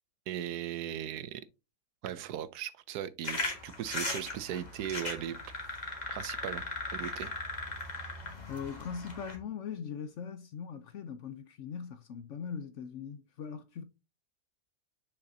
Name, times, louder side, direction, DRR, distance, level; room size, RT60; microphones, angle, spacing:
voice 1, 0.3-1.4 2.0-5.4 6.1-6.6 6.9-7.3, right 10 dB, 80° right, 1.2 m, -38 dB
sound 1, 3.2-9.4, left 2 dB, 30° left, 1.5 m, -38 dB
voice 2, 8.5-13.8, left 7 dB, 65° left, 0.8 m, -40 dB
6.6 x 5.7 x 2.7 m
omnidirectional pair, 1.7 m